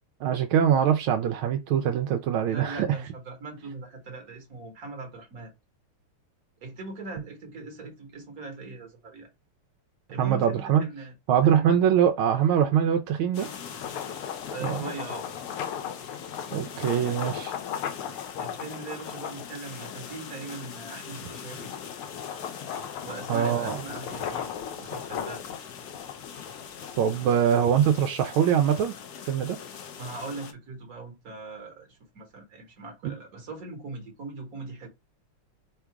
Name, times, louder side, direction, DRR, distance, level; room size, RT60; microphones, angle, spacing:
voice 1, 0.2-2.9 10.2-10.9 11.3-13.5 14.6-14.8 16.5-17.5 23.3-23.8 27.0-28.9 29.3-29.6 33.0-33.1, right 9 dB, 75° right, 1.3 m, -23 dB
voice 2, 2.5-5.5 6.6-9.3 10.1-11.7 14.5-15.2 18.4-21.7 23.0-25.7 30.0-34.9, right 3 dB, 50° right, 1.3 m, -40 dB
sound 1, 13.3-30.5, left 7 dB, 65° left, 1.0 m, -42 dB
sound 2, 13.6-20.2 20.8-27.9, left 9 dB, 80° left, 1.5 m, -37 dB
3.8 x 2.4 x 4.5 m
omnidirectional pair, 2.4 m